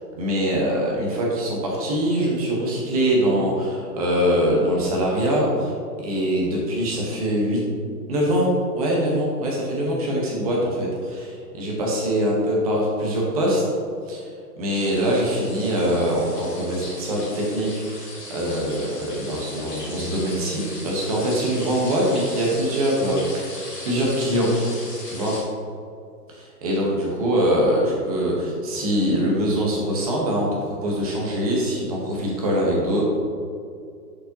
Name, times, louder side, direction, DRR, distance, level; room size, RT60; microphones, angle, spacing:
voice 1, 0.2-5.7 6.0-7.6 8.1-13.6 14.1-14.3 14.6-24.5 25.0-25.3 26.4-33.0, equal, 25° right, -3 dB, 1.2 m, -23 dB
sound 1, 14.7-25.4, left 2 dB, 10° left, 1.8 m, -38 dB
10.5 x 5.3 x 2.9 m, 2.4 s
hypercardioid pair, 175°, 48 cm